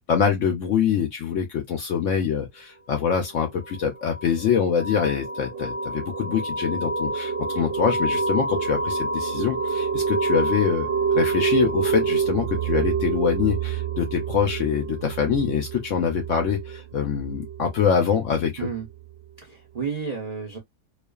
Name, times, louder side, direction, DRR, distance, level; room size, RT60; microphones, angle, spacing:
voice 1, 0.1-18.7, left 7 dB, 70° left, 0.7 m, -24 dB
sound 1, 3.6-18.0, right 5 dB, 60° right, 0.8 m, -27 dB
voice 2, 19.4-20.6, right 6 dB, 80° right, 0.3 m, -31 dB
2.4 x 2.4 x 2.2 m
omnidirectional pair, 1.7 m